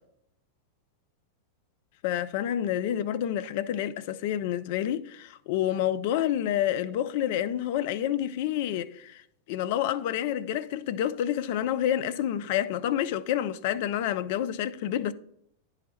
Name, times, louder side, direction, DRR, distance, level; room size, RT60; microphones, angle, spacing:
voice 1, 2.0-9.2 9.5-15.1, left 11 dB, 50° left, 0.3 m, -28 dB
10.0 x 3.8 x 3.1 m
figure-of-eight pair, 90°, 0 cm